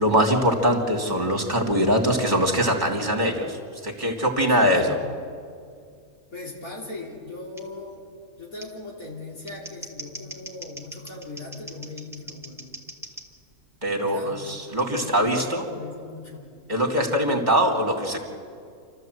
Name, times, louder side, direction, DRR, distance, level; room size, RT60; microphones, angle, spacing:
voice 1, 0.0-3.6 3.8-5.0 13.8-15.6 16.7-18.2, equal, 30° right, 2 dB, 2.7 m, -22 dB
voice 2, 4.5-5.0 6.3-8.1 8.4-12.7 14.1-14.5 15.0-16.5, left 3 dB, 70° left, -2 dB, 4.0 m, -39 dB
Scissors, 7.6-7.7 8.6-8.7 9.3-13.3 14.8-15.0, right 1 dB, ahead, 1.7 m, -41 dB
29.0 x 13.0 x 8.0 m, 2.2 s
omnidirectional pair, 1.5 m